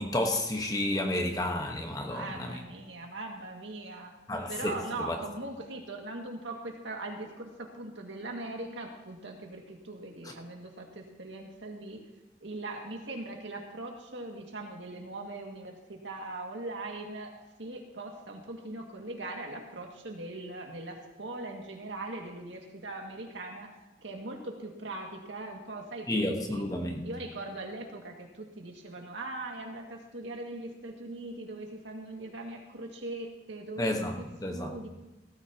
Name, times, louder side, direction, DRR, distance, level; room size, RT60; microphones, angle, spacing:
voice 1, 0.0-2.5 4.3-4.7 5.1-5.2 26.1-27.0 33.8-34.2 34.4-34.7, left 1 dB, 20° left, 2 dB, 1.1 m, -30 dB
voice 2, 2.0-4.1 4.5-12.0 12.4-17.3 17.6-26.6 27.0-34.9, right 2 dB, 75° right, 2 dB, 2.0 m, -40 dB
17.5 x 13.5 x 2.9 m, 1.0 s
head